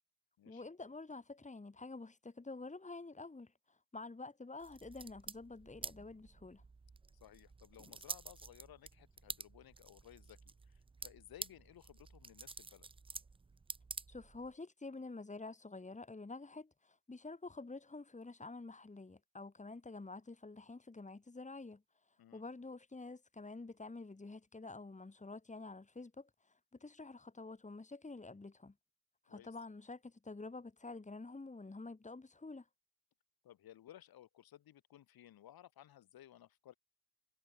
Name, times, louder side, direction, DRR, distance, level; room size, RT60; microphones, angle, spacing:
voice 1, 0.4-6.6 14.1-21.8 22.3-28.7 29.2-32.7, left 3 dB, 15° left, 4.9 m, -49 dB
sound 1, 4.6-14.5, right 4 dB, 10° right, 0.7 m, -50 dB
voice 2, 7.1-12.9 22.2-22.4 29.3-29.6 33.4-36.7, left 12 dB, 50° left, 5.3 m, -58 dB
figure-of-eight pair, 55°, 47 cm